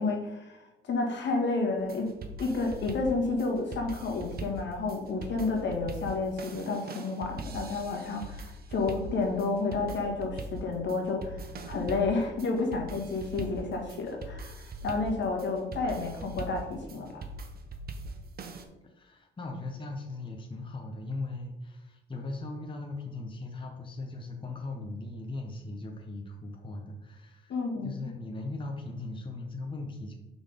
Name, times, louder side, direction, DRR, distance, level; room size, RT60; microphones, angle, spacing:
voice 1, 0.0-2.1 2.4-17.2 27.5-27.9, left 3 dB, 65° left, 1 dB, 1.6 m, -31 dB
sound 1, 1.8-18.6, right 2 dB, 50° right, 0.9 m, -41 dB
voice 2, 18.9-27.6 27.8-30.1, left 2 dB, 25° left, 2 dB, 0.9 m, -39 dB
5.4 x 4.0 x 5.1 m, 1.0 s
cardioid pair, 90°, 20 cm